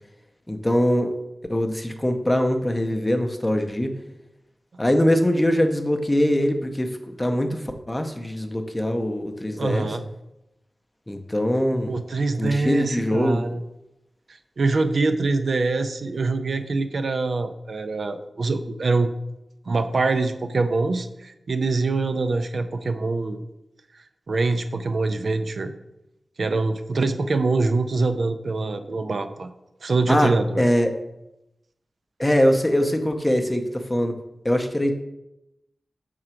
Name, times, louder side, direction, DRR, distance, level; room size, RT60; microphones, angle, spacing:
voice 1, 0.5-1.1 1.5-3.9 4.8-9.9 11.1-12.0 12.4-13.4 30.1-30.9 32.2-33.6 33.9-34.1 34.4-34.9, equal, 15° left, 5 dB, 0.5 m, -22 dB
voice 2, 9.6-10.0 11.9-13.6 14.6-19.1 19.7-23.4 24.3-25.7 26.4-29.5 29.8-30.7, right 3 dB, 60° right, 8 dB, 0.4 m, -24 dB
5.8 x 3.8 x 4.4 m, 0.91 s
wide cardioid pair, 110°, 0 cm